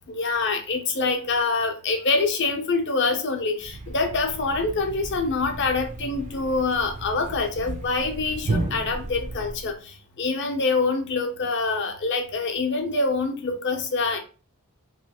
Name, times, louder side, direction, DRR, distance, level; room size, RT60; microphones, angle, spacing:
voice 1, 0.1-14.2, left 3 dB, 55° left, 5 dB, 0.6 m, -25 dB
Thump thud, 3.6-9.8, right 2 dB, 35° right, 0.3 m, -34 dB
3.0 x 2.2 x 2.8 m, 0.35 s
head